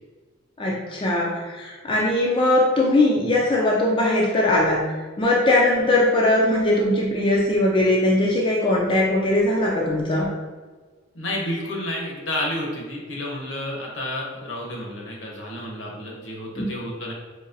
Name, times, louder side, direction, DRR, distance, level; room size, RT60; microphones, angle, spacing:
voice 1, 0.6-10.3 16.5-16.6, left 1 dB, 25° left, -4 dB, 0.4 m, -20 dB
voice 2, 11.1-17.1, left 1 dB, 70° left, -2 dB, 0.9 m, -30 dB
4.0 x 2.9 x 2.6 m, 1.4 s
head